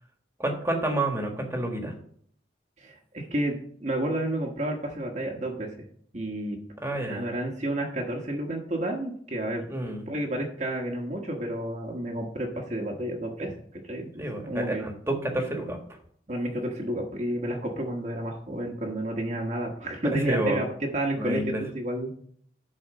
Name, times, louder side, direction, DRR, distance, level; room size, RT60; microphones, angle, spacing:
voice 1, 0.4-1.9 6.8-7.3 9.7-10.1 14.2-15.8 20.1-20.6 21.2-21.6, right 1 dB, 15° right, 2 dB, 1.5 m, -29 dB
voice 2, 2.8-3.5 3.8-5.7 6.1-6.6 6.9-9.6 10.1-13.5 13.8-14.8 16.3-22.1, right 1 dB, 40° right, 0 dB, 1.2 m, -31 dB
10.5 x 4.2 x 6.4 m, 0.62 s
head